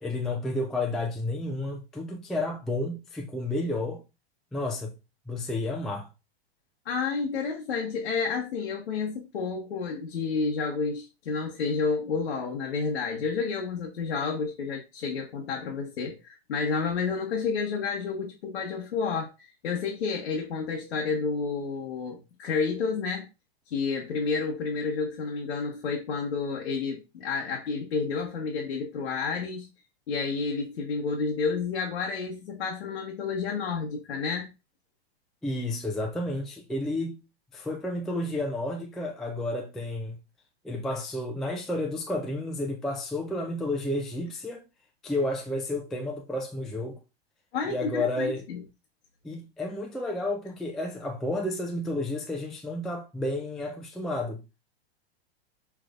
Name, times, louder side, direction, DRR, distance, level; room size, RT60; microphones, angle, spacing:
voice 1, 0.0-4.0 4.5-4.9 5.3-6.1 35.4-37.2 37.5-40.2 40.6-44.6 45.0-47.0 47.7-48.5 49.2-54.4, left 1 dB, ahead, 0.3 m, -31 dB
voice 2, 6.8-23.3 23.7-29.7 30.1-34.5 47.5-48.6, left 5 dB, 85° left, 1.1 m, -30 dB
5.8 x 3.2 x 2.4 m
hypercardioid pair, 125°, 31 cm